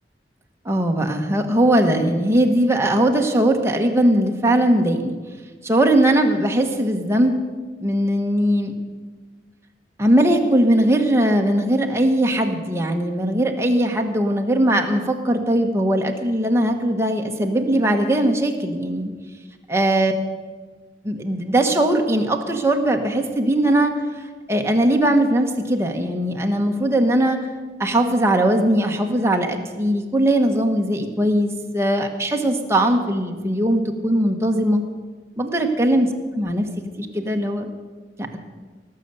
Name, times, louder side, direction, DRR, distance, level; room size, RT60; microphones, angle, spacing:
voice 1, 0.6-5.2 5.6-7.4 7.8-8.7 10.0-19.1 19.7-20.1 21.0-23.9 24.5-27.4 27.8-34.8 35.4-36.1 36.4-36.7 37.0-37.7 38.2-38.4, right 1 dB, 15° right, 3 dB, 1.1 m, -19 dB
18.5 x 6.6 x 8.2 m, 1.4 s
head